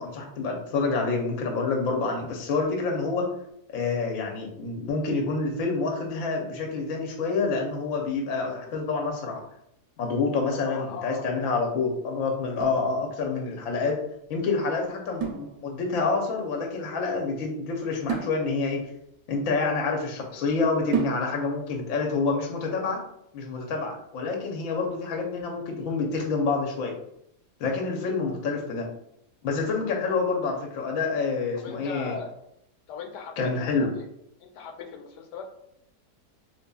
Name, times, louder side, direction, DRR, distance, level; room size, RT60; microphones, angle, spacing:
voice 1, 0.0-3.3 3.7-9.4 10.0-14.0 14.3-18.8 19.3-23.0 23.3-26.9 27.6-28.9 29.4-32.2 33.4-33.9, left 4 dB, 60° left, 1 dB, 1.1 m, -27 dB
voice 2, 10.5-11.3 27.9-28.1 30.1-30.2 31.6-32.3 32.9-34.0 34.4-35.5, left 5 dB, 90° left, 3 dB, 1.2 m, -39 dB
sound 1, 12.6-13.6 15.2-16.1 18.1-20.1 20.9-21.7, right 7 dB, 85° right, 1.2 m, -34 dB
4.1 x 3.0 x 2.2 m, 0.75 s
omnidirectional pair, 1.7 m